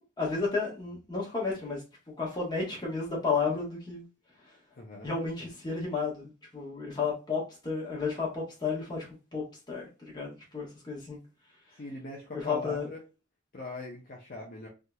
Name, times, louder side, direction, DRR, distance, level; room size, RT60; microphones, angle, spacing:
voice 1, 0.2-1.8 2.2-4.0 5.0-9.1 9.3-9.9 10.1-11.2 12.3-12.9, left 4 dB, 20° left, 1.3 m, -32 dB
voice 2, 4.7-5.1 11.8-13.0 13.5-14.7, left 2 dB, 45° left, 0.6 m, -41 dB
3.4 x 2.8 x 2.3 m
head